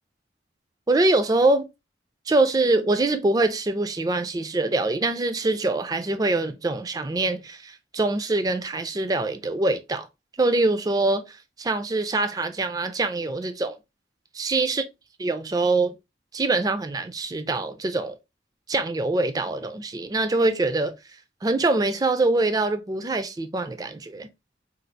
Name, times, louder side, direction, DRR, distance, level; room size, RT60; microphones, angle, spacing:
voice 1, 0.9-1.7 2.3-10.1 10.4-13.8 14.3-14.8 15.2-16.0 16.3-18.2 18.7-20.9 21.4-24.3, right 2 dB, 20° right, 0.3 m, -24 dB
4.3 x 2.3 x 2.6 m
head